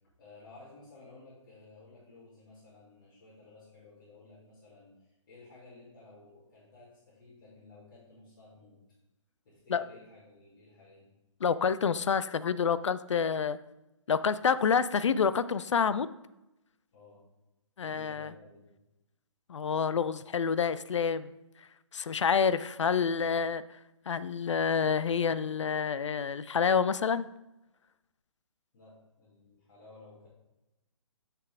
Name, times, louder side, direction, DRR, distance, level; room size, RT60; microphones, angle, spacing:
voice 1, 0.2-8.8 9.4-11.1 16.9-17.2 17.8-18.7 28.7-30.3, left 3 dB, 45° left, -9 dB, 2.4 m, -55 dB
voice 2, 11.4-13.6 14.1-16.1 17.8-18.3 19.5-21.3 21.9-23.6 24.1-27.2, left 6 dB, 65° left, 16 dB, 0.4 m, -28 dB
6.6 x 5.9 x 3.5 m, 0.96 s
figure-of-eight pair, 140°, 16 cm